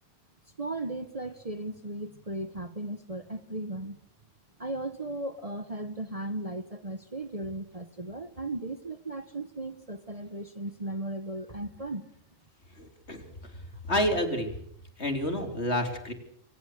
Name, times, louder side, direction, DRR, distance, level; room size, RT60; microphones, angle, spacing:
voice 1, 0.6-4.0 4.6-12.0, right 2 dB, 30° right, 10 dB, 1.3 m, -36 dB
voice 2, 12.8-13.6 13.9-14.5 15.0-16.1, left 1 dB, 55° left, 6 dB, 4.1 m, -29 dB
28.0 x 25.0 x 6.7 m, 0.66 s
omnidirectional pair, 1.3 m